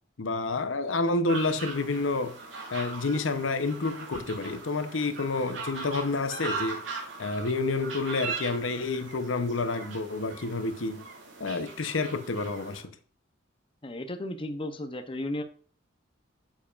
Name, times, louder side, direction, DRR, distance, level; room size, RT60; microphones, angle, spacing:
voice 1, 0.2-2.4 2.7-6.8 7.2-11.1 11.4-12.9, left 3 dB, 80° left, 0.8 m, -29 dB
sound 1, 1.3-12.8, right 4 dB, 75° right, 3.1 m, -40 dB
voice 2, 13.8-15.4, left 1 dB, 25° left, 0.7 m, -34 dB
9.0 x 7.4 x 2.5 m
head